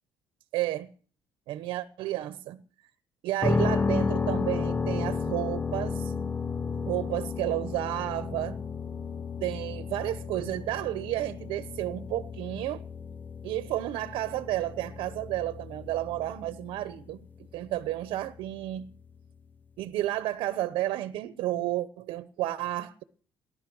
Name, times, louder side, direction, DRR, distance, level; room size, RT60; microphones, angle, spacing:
voice 1, 0.5-0.9 1.5-2.6 3.2-6.1 6.8-8.6 9.4-12.8 13.4-17.3 17.5-18.9 19.8-23.0, right 14 dB, 85° right, 1.0 m, -31 dB
sound 1, 3.4-19.3, left 4 dB, 20° left, 0.8 m, -33 dB
18.0 x 11.5 x 6.2 m
cardioid pair, 100°, 9 cm